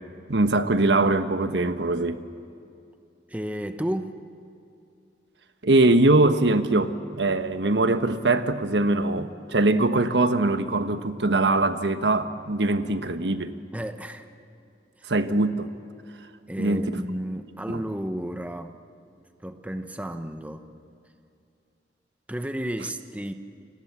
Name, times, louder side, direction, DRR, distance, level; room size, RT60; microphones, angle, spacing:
voice 1, 0.3-2.2 5.6-13.6 15.1-15.7 16.6-17.0 17.7-17.8, right 2 dB, 80° right, 9 dB, 1.4 m, -22 dB
voice 2, 3.3-4.2 13.7-14.3 15.0-15.1 16.5-18.8 19.4-20.7 22.3-23.3, right 1 dB, 10° right, 7 dB, 1.1 m, -32 dB
29.5 x 26.5 x 7.5 m, 2.5 s
head